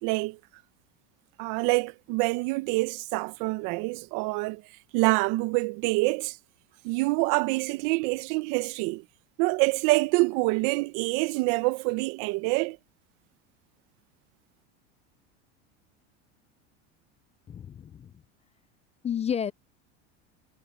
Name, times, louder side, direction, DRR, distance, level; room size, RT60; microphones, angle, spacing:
voice 1, 0.0-0.4 1.4-4.6 4.9-6.4 6.8-9.0 9.4-12.8, right 25 dB, 60° right, 1.2 m, -26 dB
voice 2, 17.5-18.1 19.0-19.5, left 8 dB, 20° left, 0.5 m, -31 dB
supercardioid pair, 110°, 35 cm